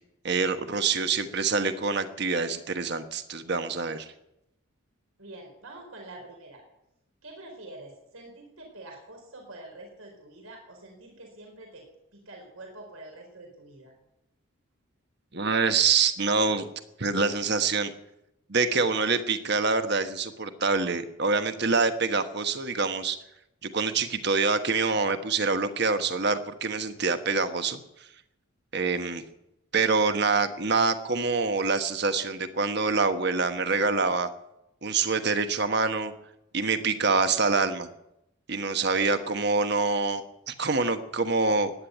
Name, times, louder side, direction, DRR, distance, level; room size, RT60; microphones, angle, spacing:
voice 1, 0.2-4.1 15.3-16.7 17.0-17.9 18.5-23.2 23.6-27.8 28.7-29.2 29.7-34.3 34.8-36.1 36.5-37.9 38.5-40.2 40.5-41.7, right 4 dB, 50° right, 9 dB, 1.3 m, -25 dB
voice 2, 5.2-6.6 7.2-11.8 12.1-13.9 39.0-39.3, right 2 dB, 85° right, 2 dB, 4.5 m, -46 dB
15.5 x 10.5 x 9.2 m, 0.85 s
head